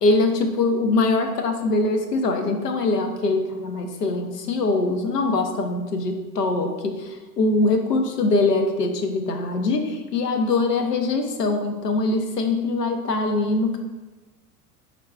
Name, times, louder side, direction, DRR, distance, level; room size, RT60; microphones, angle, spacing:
voice 1, 0.0-13.8, left 3 dB, 85° left, 5 dB, 0.7 m, -23 dB
5.3 x 3.6 x 2.3 m, 1.2 s
figure-of-eight pair, 80°, 47 cm